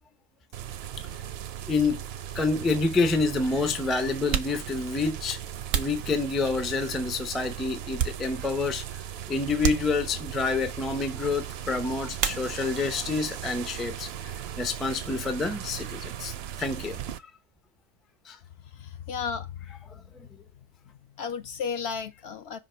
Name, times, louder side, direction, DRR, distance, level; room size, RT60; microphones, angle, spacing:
sound 1, 0.5-17.2, right 10 dB, 65° right, 0.7 m, -38 dB
voice 1, 1.7-2.0 2.3-5.4 5.7-9.0 9.3-17.0 18.3-18.4, left 3 dB, ahead, 0.3 m, -28 dB
sound 2, 4.2-6.8 7.3-8.7 9.0-9.1 9.6-10.4 12.1-12.9 13.2-13.9 14.2-16.3, right 8 dB, 80° right, 1.1 m, -34 dB
voice 2, 18.6-19.7 20.2-20.7 20.9-22.6, left 6 dB, 65° left, 0.7 m, -35 dB
5.8 x 2.9 x 5.5 m
omnidirectional pair, 1.3 m